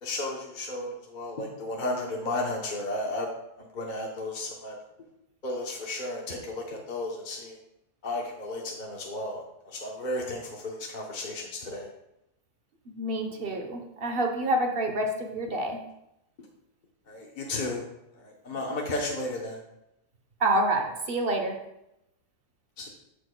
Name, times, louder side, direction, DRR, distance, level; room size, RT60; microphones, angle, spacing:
voice 1, 0.0-3.3 3.6-4.7 5.4-7.6 8.0-11.9 17.1-17.9 18.2-19.6 22.8-22.9, left 2 dB, 40° left, -1 dB, 0.8 m, -33 dB
voice 2, 12.9-15.8 20.4-21.6, right 1 dB, 45° right, 3 dB, 0.9 m, -27 dB
14.0 x 4.9 x 2.2 m, 0.86 s
omnidirectional pair, 1.6 m